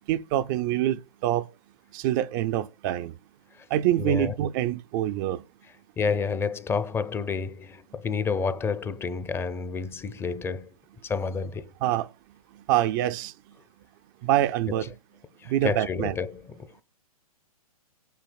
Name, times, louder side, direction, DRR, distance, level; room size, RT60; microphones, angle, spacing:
voice 1, 0.1-1.5 1.9-3.1 3.7-5.4 11.8-12.1 12.7-13.3 14.2-14.9 15.5-16.1, right 12 dB, 35° right, 0.4 m, -25 dB
voice 2, 4.0-4.3 6.0-10.7 11.0-11.7 14.7-14.9 15.4-16.8, left 5 dB, 10° left, 0.6 m, -30 dB
17.5 x 9.1 x 2.2 m
hypercardioid pair, 130°, 19 cm